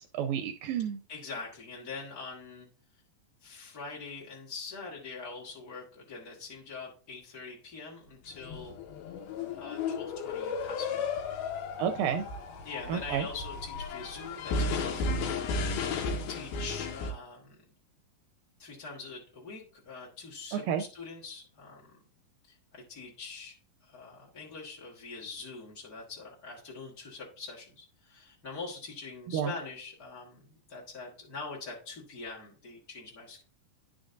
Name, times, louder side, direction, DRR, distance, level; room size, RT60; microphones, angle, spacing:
voice 1, 0.0-1.0 11.8-12.3 12.9-13.3 20.5-20.8 29.3-29.5, right 9 dB, 80° right, 7 dB, 2.0 m, -30 dB
voice 2, 1.1-2.7 3.4-8.7 9.5-11.1 12.1-15.9 16.3-17.6 18.6-22.0 22.4-23.5 23.8-33.4, left 4 dB, 45° left, -5 dB, 1.2 m, -44 dB
sound 1, 8.3-17.1, left 4 dB, 90° left, 2.9 m, -34 dB
11.0 x 6.3 x 2.6 m, 0.40 s
omnidirectional pair, 4.3 m